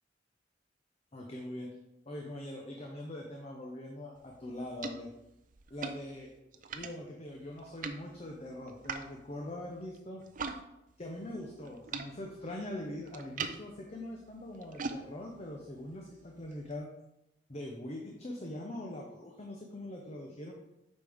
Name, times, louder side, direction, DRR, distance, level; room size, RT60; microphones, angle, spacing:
voice 1, 1.1-1.7 2.1-5.1 5.7-10.2 11.0-16.9 17.5-20.5, left 1 dB, 35° left, 0 dB, 0.8 m, -42 dB
sound 1, 4.2-10.6 10.9-16.8, right 4 dB, 45° right, 0.5 m, -44 dB
8.0 x 5.3 x 3.6 m, 0.88 s
head